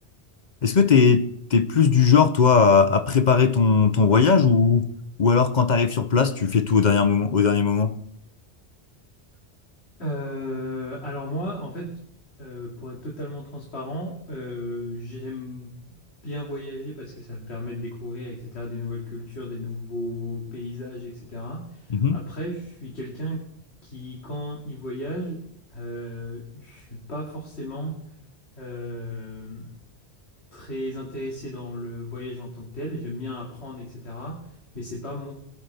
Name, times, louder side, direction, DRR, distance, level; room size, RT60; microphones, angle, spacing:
voice 1, 0.6-4.9 5.2-7.9 21.9-22.2, left 5 dB, 50° left, 0.8 m, -18 dB
voice 2, 10.0-12.0 12.4-15.7 16.2-23.4 23.8-25.4 25.7-28.0 28.5-29.7 30.5-35.3, left 1 dB, 85° left, 2.6 m, -34 dB
23.0 x 9.7 x 3.4 m
omnidirectional pair, 1.1 m